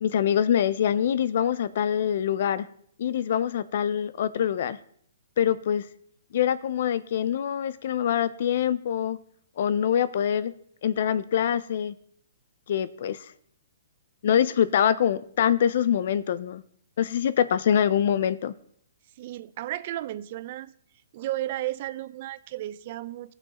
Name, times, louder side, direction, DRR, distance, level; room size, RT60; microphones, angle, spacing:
voice 1, 0.0-2.7 3.0-4.8 5.4-5.9 6.3-9.2 9.6-10.5 10.8-11.9 12.7-13.3 14.2-16.6 17.0-18.5, left 9 dB, 55° left, 15 dB, 0.4 m, -24 dB
voice 2, 19.2-20.7 21.1-23.3, right 14 dB, 40° right, 16 dB, 0.5 m, -33 dB
15.5 x 5.7 x 4.1 m, 0.65 s
hypercardioid pair, 155°, 0 cm